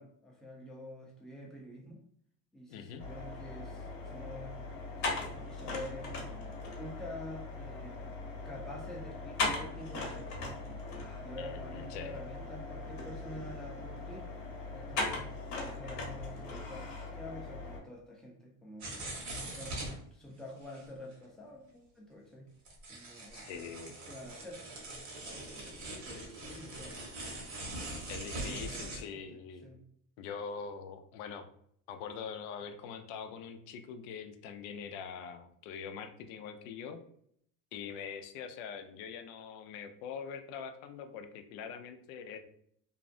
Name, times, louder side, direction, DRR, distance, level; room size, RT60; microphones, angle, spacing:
voice 1, 0.0-2.0 2.5-4.6 5.0-6.1 6.8-8.1 8.4-10.3 11.2-14.3 14.7-15.3 15.6-18.9 19.5-22.5 22.9-23.7 24.1-24.6 25.2-27.1 28.3-28.8 29.1-29.8, left 1 dB, ahead, -2 dB, 0.5 m, -47 dB
voice 2, 2.7-3.1 11.4-12.2 23.3-24.0 28.1-29.7 30.2-31.5 31.9-37.0 37.7-42.4, left 6 dB, 85° left, 7 dB, 0.5 m, -43 dB
sound 1, 3.0-17.8, left 3 dB, 50° left, 0.9 m, -39 dB
sound 2, 18.8-20.0 20.7-20.8 21.1-21.2 21.5-21.6 22.7-29.0, right 2 dB, 50° right, 1.0 m, -42 dB
2.6 x 2.1 x 2.5 m, 0.65 s
cardioid pair, 120°, 37 cm